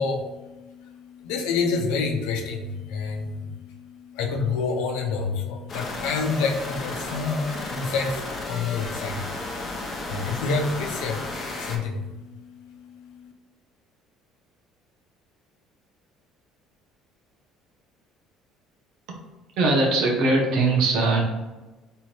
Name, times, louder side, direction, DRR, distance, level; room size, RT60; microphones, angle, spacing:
voice 1, 0.0-13.3, left 4 dB, 80° left, 2 dB, 0.8 m, -29 dB
sound 1, 5.7-11.8, left 2 dB, 45° left, 1.0 m, -33 dB
voice 2, 19.6-21.2, right 2 dB, 70° right, 0 dB, 1.0 m, -21 dB
3.5 x 3.0 x 4.4 m, 1.1 s
supercardioid pair, 80°, 0 cm